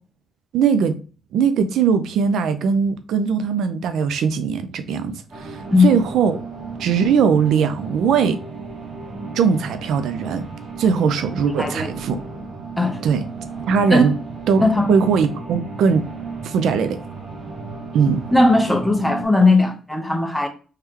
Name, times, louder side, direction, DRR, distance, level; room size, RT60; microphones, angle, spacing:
voice 1, 0.5-1.0 1.3-6.4 6.8-8.4 9.3-10.5 10.8-12.2 13.0-13.2 13.7-14.1 14.5-14.6 14.9-16.0 16.4-17.0 17.9-18.2, right 6 dB, 75° right, 0.4 m, -20 dB
sound 1, 5.3-19.3, right 4 dB, 40° right, 1.0 m, -34 dB
voice 2, 11.6-11.9 12.8-13.0 13.9-14.1 14.6-14.9 18.3-20.5, left 2 dB, 5° left, 0.9 m, -17 dB
3.5 x 3.2 x 2.9 m
cardioid pair, 90°, 0 cm